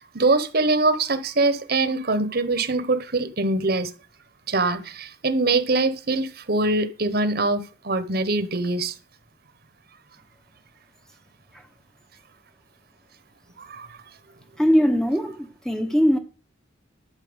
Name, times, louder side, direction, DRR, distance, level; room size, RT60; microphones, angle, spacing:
voice 1, 0.0-3.9 4.5-8.9 13.6-13.9, right 2 dB, 50° right, 1.1 m, -23 dB
voice 2, 14.6-16.2, equal, 5° left, 0.9 m, -21 dB
12.0 x 4.5 x 7.9 m
head